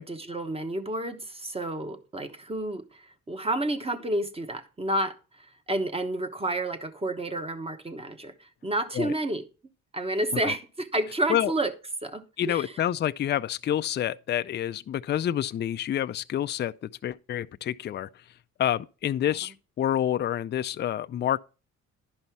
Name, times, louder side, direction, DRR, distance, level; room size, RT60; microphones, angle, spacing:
voice 1, 0.0-2.8 3.3-5.1 5.7-8.3 8.6-9.4 9.9-11.7 12.0-12.7, right 1 dB, 20° right, 1.1 m, -30 dB
voice 2, 12.4-18.1 18.6-21.4, left 11 dB, 35° left, 0.4 m, -28 dB
11.0 x 5.4 x 4.5 m
cardioid pair, 90°, 30 cm